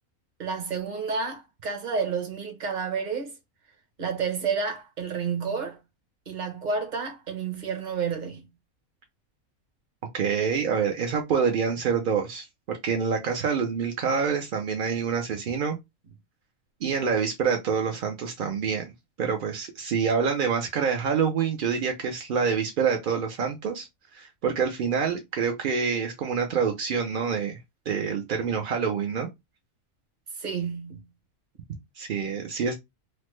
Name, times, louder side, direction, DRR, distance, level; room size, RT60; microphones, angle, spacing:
voice 1, 0.4-3.3 4.0-5.8 6.3-8.5 30.4-31.1, right 5 dB, 40° right, 0.8 m, -30 dB
voice 2, 10.1-15.8 16.8-18.9 19.2-23.9 24.1-27.6 27.9-29.3 32.0-32.7, right 6 dB, 65° right, 0.5 m, -26 dB
3.1 x 2.1 x 3.0 m
omnidirectional pair, 1.5 m